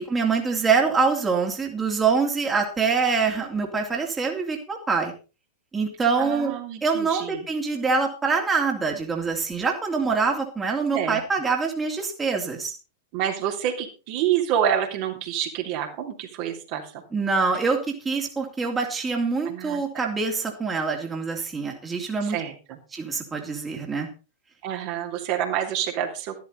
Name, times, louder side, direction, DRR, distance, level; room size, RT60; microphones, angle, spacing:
voice 1, 0.0-5.1 5.7-6.5 6.8-12.7 17.1-22.4 22.9-24.1, right 4 dB, 15° right, 1 dB, 3.0 m, -25 dB
voice 2, 6.2-7.5 10.9-11.2 13.1-17.0 19.4-20.0 22.2-22.8 24.6-26.3, right 10 dB, 45° right, 2 dB, 3.3 m, -28 dB
14.0 x 12.5 x 4.0 m, 0.33 s
figure-of-eight pair, 95°, 0 cm